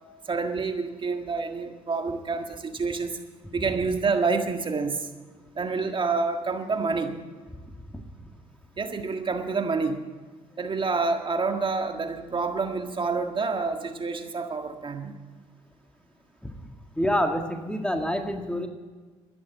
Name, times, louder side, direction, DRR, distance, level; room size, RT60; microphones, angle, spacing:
voice 1, 0.2-3.2 3.5-5.1 5.5-7.1 8.8-10.0 10.6-15.2, right 4 dB, 35° right, 5 dB, 1.7 m, -28 dB
voice 2, 17.0-18.7, equal, 5° left, 5 dB, 1.7 m, -27 dB
12.5 x 10.5 x 8.4 m, 1.4 s
supercardioid pair, 65°, 14 cm